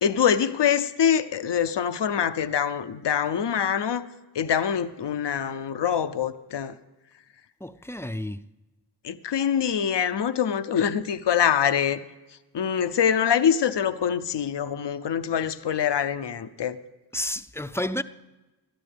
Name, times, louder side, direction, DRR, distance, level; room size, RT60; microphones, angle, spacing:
voice 1, 0.0-4.0 4.3-6.7 9.0-12.0 12.5-16.8, left 8 dB, 80° left, 0.6 m, -24 dB
voice 2, 7.6-8.4 17.1-18.0, left 1 dB, 5° left, 0.5 m, -30 dB
20.0 x 13.0 x 3.4 m
wide cardioid pair, 50°, 41 cm